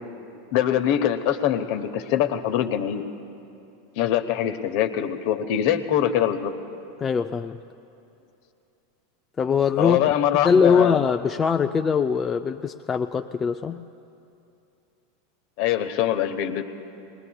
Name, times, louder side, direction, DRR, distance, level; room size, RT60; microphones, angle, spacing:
voice 1, 0.5-3.0 4.0-6.5 9.8-11.0 15.6-16.6, left 10 dB, 60° left, 7 dB, 0.9 m, -23 dB
voice 2, 7.0-7.6 9.4-10.0 10.4-13.8, left 6 dB, 25° left, 6 dB, 0.4 m, -22 dB
23.0 x 20.0 x 2.3 m, 2.7 s
hypercardioid pair, 90°, 0 cm